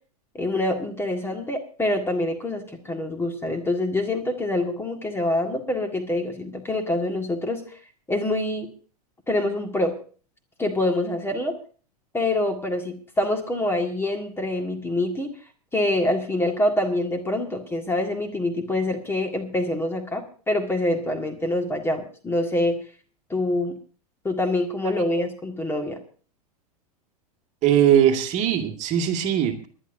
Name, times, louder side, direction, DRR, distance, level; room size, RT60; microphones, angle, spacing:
voice 1, 0.3-7.6 8.1-8.7 9.3-10.0 10.6-11.6 12.1-15.3 15.7-22.8 23.3-23.8 24.2-26.0, left 1 dB, 10° left, 4 dB, 1.8 m, -25 dB
voice 2, 27.6-29.7, right 10 dB, 35° right, 3 dB, 2.0 m, -20 dB
25.0 x 11.0 x 2.7 m, 0.40 s
hypercardioid pair, 105°, 20 cm